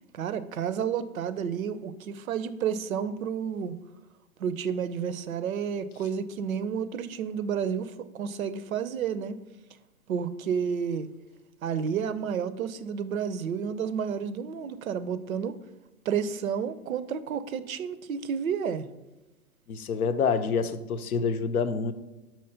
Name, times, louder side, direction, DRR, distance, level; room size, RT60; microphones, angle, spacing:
voice 1, 0.1-3.8 4.4-9.4 10.1-11.1 11.6-15.6 16.1-18.9, right 7 dB, 70° right, 13 dB, 0.6 m, -31 dB
voice 2, 19.7-21.9, left 5 dB, 85° left, 11 dB, 0.6 m, -27 dB
5.6 x 3.0 x 5.6 m, 1.1 s
hypercardioid pair, 125°, 42 cm